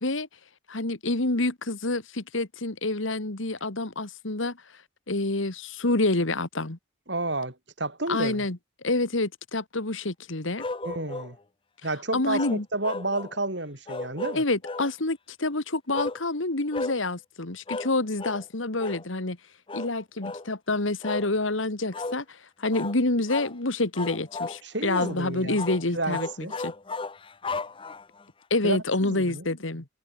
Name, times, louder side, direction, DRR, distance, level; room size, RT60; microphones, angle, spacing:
voice 1, 0.7-4.6 5.1-6.8 8.1-8.6 8.8-10.6 12.1-12.6 14.3-19.4 19.7-26.7 28.5-29.9, left 2 dB, 80° left, 2.1 m, -27 dB
voice 2, 7.1-8.5 10.8-11.4 11.8-14.4 24.6-25.6 25.9-26.5 28.6-29.5, right 2 dB, 60° right, 5.1 m, -31 dB
sound 1, 10.6-11.3 12.3-13.4 13.9-14.9 15.9-16.2 16.7-17.0 17.7-17.9 18.2-18.4 18.8-19.0 19.7-19.9 20.2-20.5 21.0-21.3 21.9-22.2 22.7-23.0 23.3-23.5 24.0-24.6 24.9-25.2 25.6-25.8 26.1-28.2, left 3 dB, 25° left, 0.6 m, -34 dB
head